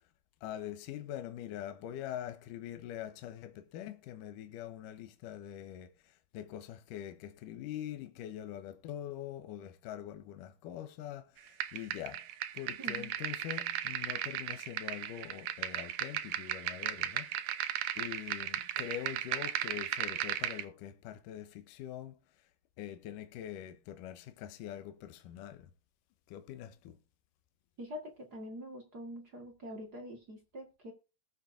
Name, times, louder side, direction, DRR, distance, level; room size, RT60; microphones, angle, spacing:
voice 1, 0.4-12.3 12.5-22.2 22.8-25.7 26.3-27.0, left 11 dB, 75° left, 2.4 m, -44 dB
sound 1, 11.6-20.6, right 12 dB, 70° right, 2.2 m, -36 dB
voice 2, 12.8-13.1 27.8-30.9, equal, 40° right, 1.6 m, -45 dB
20.0 x 7.2 x 2.6 m
omnidirectional pair, 3.9 m